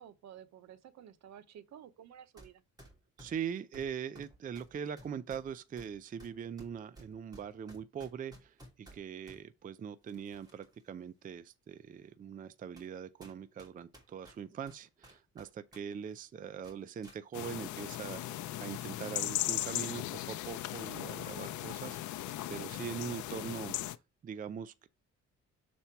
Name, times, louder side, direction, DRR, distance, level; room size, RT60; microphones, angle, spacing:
voice 1, 0.0-2.6, right 9 dB, 70° right, 0.9 m, -52 dB
sound 1, 2.4-2.5 2.8-9.4 10.0-10.8 11.2-11.3 12.0-12.1 12.8-12.9 13.2-15.8 16.1-16.2 16.6-17.2, right 1 dB, 15° right, 2.6 m, -56 dB
voice 2, 3.2-23.8 24.2-24.9, right 7 dB, 30° right, 0.4 m, -42 dB
sound 2, 17.3-24.0, left 14 dB, 85° left, 0.6 m, -38 dB
6.8 x 4.3 x 4.5 m
cardioid pair, 135°, 29 cm